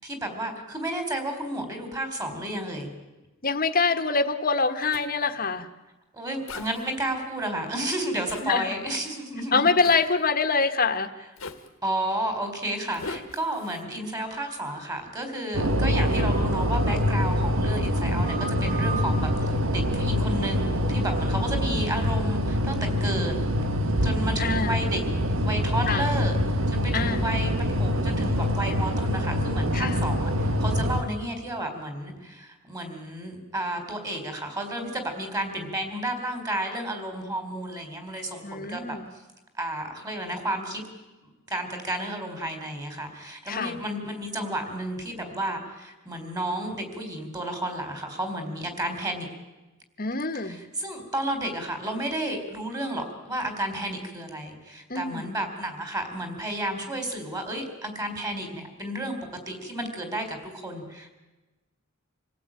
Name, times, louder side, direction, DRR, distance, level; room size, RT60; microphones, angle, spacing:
voice 1, 0.0-2.9 6.1-9.7 11.8-23.3 24.0-25.0 25.4-38.9 39.6-40.8 41.2-49.3 50.3-59.2 59.5-61.1, right 1 dB, 20° right, 6 dB, 4.2 m, -32 dB
voice 2, 3.4-5.7 8.4-8.7 9.5-11.1 24.4-24.8 25.9-26.0 26.9-27.2 29.7-30.0 38.4-39.1 43.5-43.8 50.0-50.6 54.9-55.3, left 4 dB, 45° left, 8 dB, 1.6 m, -25 dB
Zipper (clothing), 4.9-5.1 6.5-6.9 8.3-8.5 9.8-10.1 11.4-11.7 12.9-13.8, left 3 dB, 90° left, 2.0 m, -39 dB
sound 1, 14.2-14.9 15.9-17.1 18.0-19.5, right 3 dB, 45° right, 3.3 m, -39 dB
sound 2, 15.5-31.0, equal, 85° right, 1.6 m, -25 dB
27.0 x 17.0 x 9.1 m, 1.1 s
head